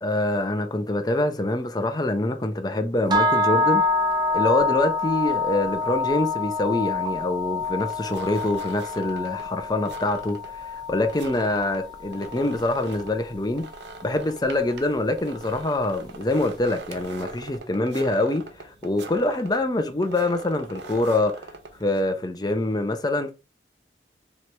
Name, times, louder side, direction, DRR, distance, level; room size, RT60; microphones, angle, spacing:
voice 1, 0.0-4.1 4.3-13.6 14.0-21.5 21.8-23.3, left 2 dB, 25° left, 0.6 m, -25 dB
sound 1, 3.1-13.2, left 3 dB, 25° right, 0.6 m, -26 dB
sound 2, 7.8-22.2, right 3 dB, 80° right, 0.7 m, -42 dB
4.5 x 3.1 x 3.3 m
head